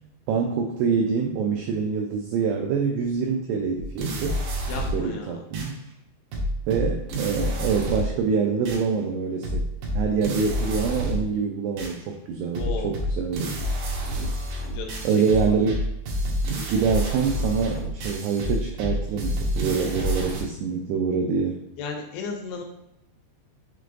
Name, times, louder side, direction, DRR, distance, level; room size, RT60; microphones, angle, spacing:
voice 1, 0.3-4.4 4.9-5.8 6.7-9.7 9.9-13.6 15.0-15.8 16.7-21.6, right 5 dB, 90° right, 2 dB, 2.3 m, -25 dB
sound 1, 3.8-5.1 5.5-5.7 6.3-8.2 8.7-8.8 9.4-11.3 11.8-11.9 12.5-20.4, equal, 75° right, 2.3 m, -28 dB
voice 2, 4.7-5.4 12.5-13.0 14.7-15.0 21.8-22.6, left 5 dB, 80° left, 2 dB, 2.7 m, -34 dB
6.6 x 3.2 x 2.5 m, 0.88 s
omnidirectional pair, 5.2 m